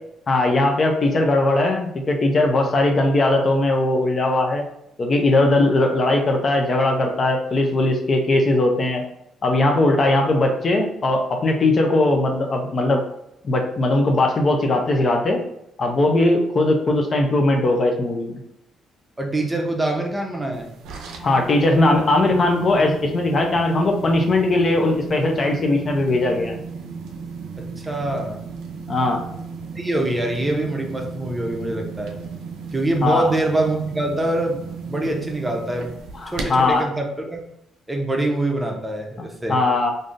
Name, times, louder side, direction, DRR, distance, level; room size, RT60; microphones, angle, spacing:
voice 1, 0.3-4.6 5.0-9.0 9.4-13.0 13.4-15.4 15.8-18.4 21.2-26.6 28.9-29.2 33.0-33.3 36.1-36.8 39.5-39.9, left 2 dB, 45° left, 3 dB, 0.6 m, -19 dB
voice 2, 19.2-20.7 27.6-28.4 29.7-32.2 32.7-35.9 36.3-37.4 37.9-39.6, right 1 dB, 15° right, 1 dB, 0.7 m, -24 dB
sound 1, 20.5-36.8, right 5 dB, 85° right, 0.5 m, -35 dB
3.5 x 2.6 x 2.5 m, 0.78 s
cardioid pair, 90°, 0 cm